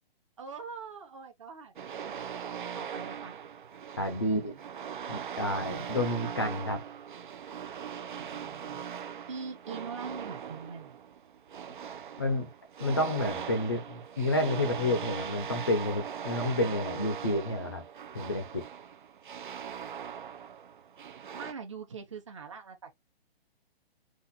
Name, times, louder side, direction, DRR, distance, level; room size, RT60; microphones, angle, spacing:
voice 1, 0.4-1.7 2.0-2.2 2.7-3.4 4.1-4.6 8.2-8.8 9.3-11.0 21.3-22.9, right 5 dB, 30° right, 1.0 m, -43 dB
sound 1, 1.8-21.5, right 8 dB, 55° right, 0.5 m, -40 dB
voice 2, 4.0-4.5 5.1-6.8 12.2-12.5 12.8-17.8 18.1-18.6, left 1 dB, 25° left, 0.5 m, -30 dB
4.1 x 2.5 x 4.1 m
hypercardioid pair, 180°, 31 cm